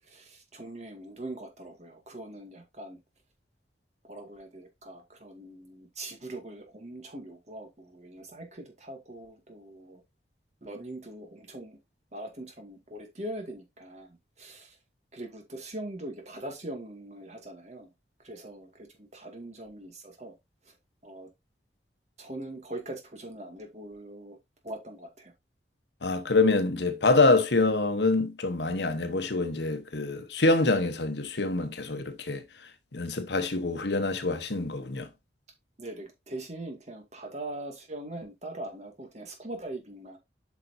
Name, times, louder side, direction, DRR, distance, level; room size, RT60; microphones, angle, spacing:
voice 1, 0.1-3.0 4.0-10.0 10.6-11.8 12.1-14.8 15.1-17.9 18.2-20.3 21.0-21.3 22.2-24.4 24.6-25.3 35.8-40.2, right 1 dB, 40° right, 2.1 m, -42 dB
voice 2, 26.0-32.4 32.9-35.1, left 3 dB, 80° left, 1.1 m, -25 dB
8.5 x 5.8 x 2.7 m
head